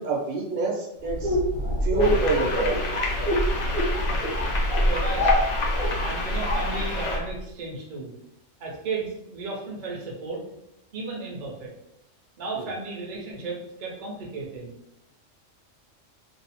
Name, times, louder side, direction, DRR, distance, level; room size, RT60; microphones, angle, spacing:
voice 1, 0.0-1.4 1.8-2.8 12.6-12.7, right 3 dB, 80° right, 0 dB, 0.9 m, -27 dB
sound 1, 1.0-7.3, equal, 10° right, 0.5 m, -25 dB
sound 2, 2.0-7.2, left 2 dB, 85° left, 0.3 m, -31 dB
voice 2, 4.8-5.3 6.0-8.1 8.6-10.4 10.9-11.7 12.4-14.7, right 3 dB, 45° right, -3 dB, 0.7 m, -34 dB
2.6 x 2.0 x 2.8 m, 0.82 s
omnidirectional pair, 1.3 m